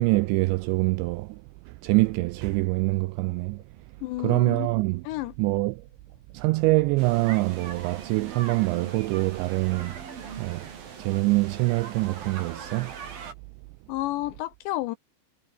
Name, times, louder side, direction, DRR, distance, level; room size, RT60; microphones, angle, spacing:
voice 1, 0.0-1.4 1.7-3.6 4.2-5.1 5.4-5.8 6.3-10.0 10.4-10.7 11.0-13.0, right 22 dB, 85° right, 2.6 m, -25 dB
sound 1, 3.1-8.1, right 6 dB, 65° right, 7.7 m, -59 dB
voice 2, 4.0-4.7 5.1-5.3 13.9-15.0, left 17 dB, 90° left, 2.6 m, -31 dB
sound 2, 7.0-13.3, right 6 dB, 50° right, 5.6 m, -41 dB
omnidirectional pair, 5.7 m